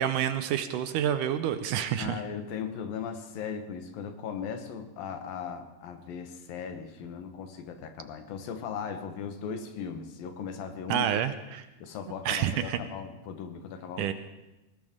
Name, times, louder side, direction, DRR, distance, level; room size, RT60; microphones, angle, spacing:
voice 1, 0.0-2.2 10.9-11.7 12.3-12.8 14.0-14.1, right 10 dB, 75° right, 10 dB, 2.1 m, -28 dB
voice 2, 2.0-11.1 11.8-14.1, left 7 dB, 85° left, 7 dB, 3.0 m, -38 dB
19.5 x 18.5 x 3.7 m, 0.98 s
omnidirectional pair, 4.0 m